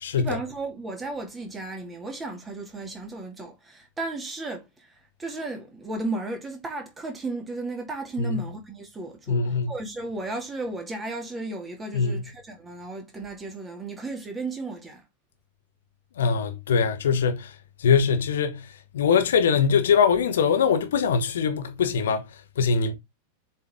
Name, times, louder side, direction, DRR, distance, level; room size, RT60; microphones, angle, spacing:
voice 1, 0.2-4.9 5.2-15.0, right 2 dB, 15° right, 2.4 m, -34 dB
voice 2, 9.3-9.7 11.9-12.2 16.2-17.5 17.8-18.6 18.9-22.2 22.6-22.9, left 6 dB, 60° left, 1.3 m, -22 dB
7.4 x 4.5 x 3.7 m
figure-of-eight pair, 90°, 0 cm